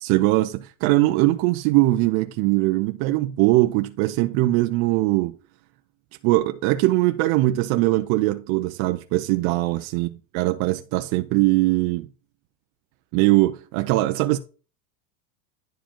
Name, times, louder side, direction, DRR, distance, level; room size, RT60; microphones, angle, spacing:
voice 1, 0.0-5.4 6.2-12.1 13.1-14.4, right 18 dB, 45° right, 0.7 m, -21 dB
10.5 x 4.9 x 4.5 m
supercardioid pair, 140°, 41 cm